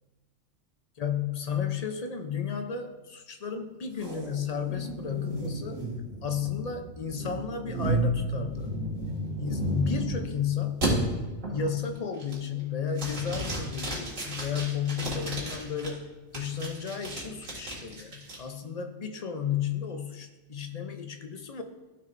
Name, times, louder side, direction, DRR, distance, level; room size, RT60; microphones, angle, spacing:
voice 1, 1.0-5.8 6.2-8.7 9.4-10.9 11.5-21.6, left 7 dB, 40° left, 6 dB, 0.6 m, -33 dB
sound 1, 4.0-10.3 10.8-10.9 11.4-11.8 12.2-12.6 13.0-15.9 16.3-18.4, right 1 dB, 90° right, 2.3 m, -33 dB
13.5 x 6.0 x 2.6 m, 1.2 s
omnidirectional pair, 1.3 m